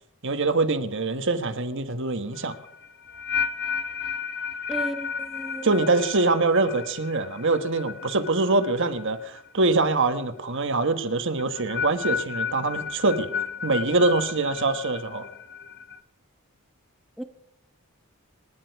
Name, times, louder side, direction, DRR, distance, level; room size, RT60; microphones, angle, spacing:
voice 1, 0.2-2.6 5.6-13.3 13.6-15.3, right 3 dB, 60° right, 1.4 m, -24 dB
sound 1, 2.4-9.5 9.7-10.2 11.4-16.0, left 6 dB, 45° left, 0.8 m, -33 dB
voice 2, 4.7-5.9 17.2-17.3, right 1 dB, ahead, 0.7 m, -35 dB
27.5 x 10.5 x 4.7 m
head